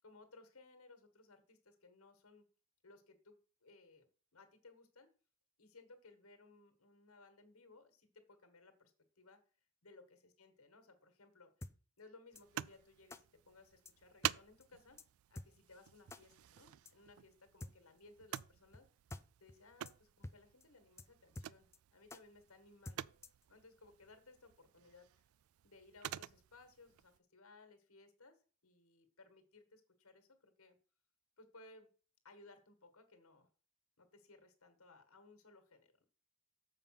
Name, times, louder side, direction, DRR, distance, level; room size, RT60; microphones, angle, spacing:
voice 1, 0.0-2.5 2.8-4.1 4.3-5.1 5.6-9.4 9.8-11.7 12.0-15.0 15.3-18.9 19.4-23.1 23.5-25.3 25.6-30.8 31.4-31.9 32.2-33.5 34.0-36.1, left 3 dB, 90° left, 7 dB, 1.6 m, -62 dB
sound 1, 11.6-11.7 12.3-12.4 13.1-13.2 13.8-13.9 14.2-14.4 14.6-14.7 15.0-15.1 15.3-15.5 16.1-16.2 16.8-16.9 17.6-17.7 18.3-18.4 18.7-18.8 19.1-19.2 19.5-19.6 19.8-19.9 20.2-20.4 20.6-20.7 21.0-21.1 21.3-21.8 22.1-22.2 22.8-23.4, left 2 dB, 15° left, 0.4 m, -49 dB
sound 2, 12.3-27.2, right 12 dB, 80° right, 0.3 m, -49 dB
7.2 x 5.3 x 5.8 m, 0.39 s
head